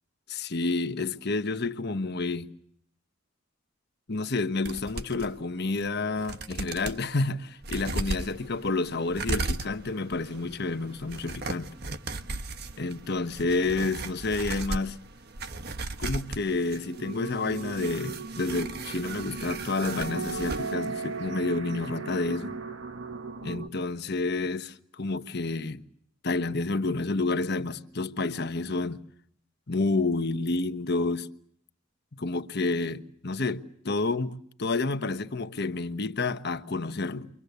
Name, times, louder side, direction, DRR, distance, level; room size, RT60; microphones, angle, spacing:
voice 1, 0.3-2.5 4.1-11.7 12.8-15.0 16.0-22.5 23.4-25.8 26.2-29.0 29.7-31.3 32.1-37.3, left 3 dB, 55° left, 1.3 m, -29 dB
sound 1, 4.7-5.3 5.8-5.9 6.2-7.0 7.6-20.7 21.0-21.1, right 2 dB, 55° right, 1.3 m, -37 dB
sound 2, 17.0-23.7, right 4 dB, 75° right, 1.8 m, -37 dB
30.0 x 24.0 x 8.2 m
head